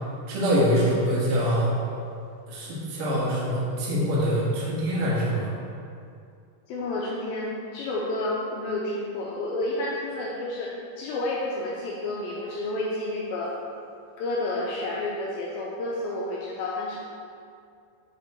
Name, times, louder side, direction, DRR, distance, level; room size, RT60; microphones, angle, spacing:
voice 1, 0.3-1.7 2.5-5.5, equal, 55° right, -6 dB, 1.6 m, -24 dB
voice 2, 6.7-13.5 14.2-17.0, left 2 dB, 80° left, -4 dB, 2.2 m, -30 dB
10.0 x 3.5 x 4.2 m, 2.4 s
omnidirectional pair, 4.6 m